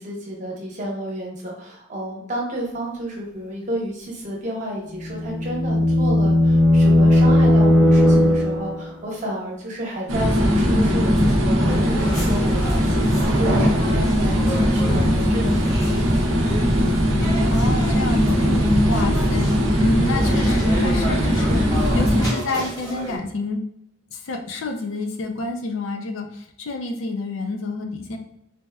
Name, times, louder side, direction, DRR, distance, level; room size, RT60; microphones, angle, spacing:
voice 1, 0.0-15.9 18.4-18.8, right 1 dB, 35° right, -3 dB, 0.8 m, -31 dB
sound 1, 5.0-8.9, left 1 dB, 5° right, 0.4 m, -16 dB
sound 2, 10.1-22.3, equal, 65° right, 0.6 m, -19 dB
sound 3, 11.6-23.2, right 1 dB, 20° left, 0.7 m, -33 dB
voice 2, 17.5-23.7 24.1-28.2, left 2 dB, 65° left, 3 dB, 0.4 m, -29 dB
4.0 x 2.1 x 2.3 m, 0.78 s
head